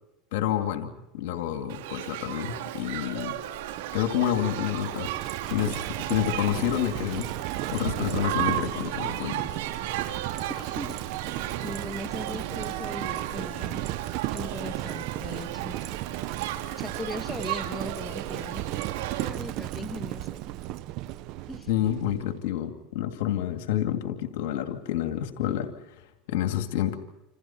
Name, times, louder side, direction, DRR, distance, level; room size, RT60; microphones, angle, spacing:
voice 1, 0.3-3.4 3.9-5.1 5.5-9.5 21.7-27.0, left 11 dB, 80° left, 6 dB, 2.5 m, -29 dB
Shout / Human group actions, 1.7-19.3, right 13 dB, 80° right, 2.7 m, -35 dB
Livestock farm animals working animals, 2.8-22.4, right 15 dB, 60° right, 0.9 m, -35 dB
voice 2, 10.5-11.0 11.3-13.8 14.3-15.8 16.8-18.6 19.2-20.4 21.5-21.7, left 2 dB, 10° left, 7 dB, 1.8 m, -39 dB
28.5 x 28.0 x 4.5 m, 0.95 s
supercardioid pair, 110°, 0 cm